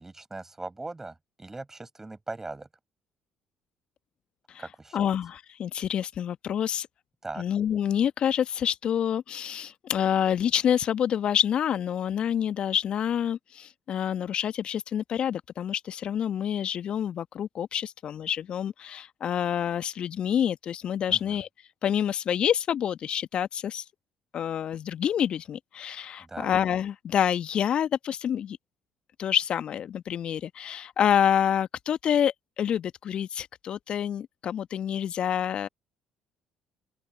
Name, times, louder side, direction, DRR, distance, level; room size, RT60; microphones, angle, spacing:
voice 1, 0.0-2.7 4.6-5.1 7.2-7.4 21.1-21.4 26.2-26.5, right 2 dB, 20° right, 6.0 m, -40 dB
voice 2, 4.9-6.9 7.4-21.5 21.8-23.8 24.3-28.6 29.2-35.7, left 9 dB, 50° left, 1.5 m, -27 dB
open air
figure-of-eight pair, 50°, 2 cm